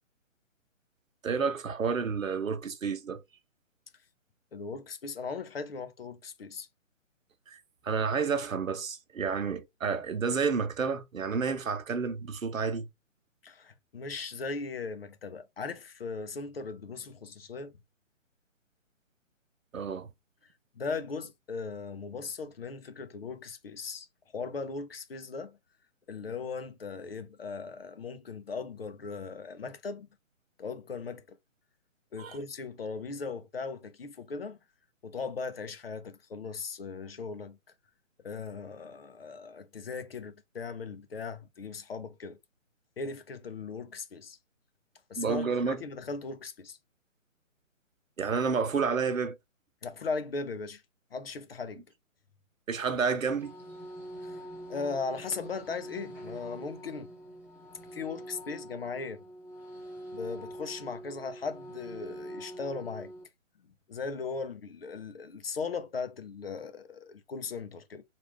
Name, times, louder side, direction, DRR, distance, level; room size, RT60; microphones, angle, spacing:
voice 1, 1.2-3.2 7.5-7.6 7.8-12.9 19.7-20.1 32.2-32.4 45.2-45.8 48.2-49.4 52.7-53.5, right 5 dB, 80° right, 0.7 m, -30 dB
voice 2, 4.5-6.7 13.4-17.7 20.8-24.1 24.3-25.6 26.1-30.1 30.6-31.4 32.1-34.6 35.0-37.6 38.2-42.4 43.0-44.4 45.1-46.8 49.8-50.8 51.1-51.8 54.2-54.4 54.7-57.1 57.9-59.2 60.1-63.1 63.9-68.0, left 4 dB, 50° left, 0.6 m, -38 dB
sound 1, 53.3-63.2, right 1 dB, ahead, 0.4 m, -45 dB
3.3 x 2.5 x 3.4 m
figure-of-eight pair, 140°, 40 cm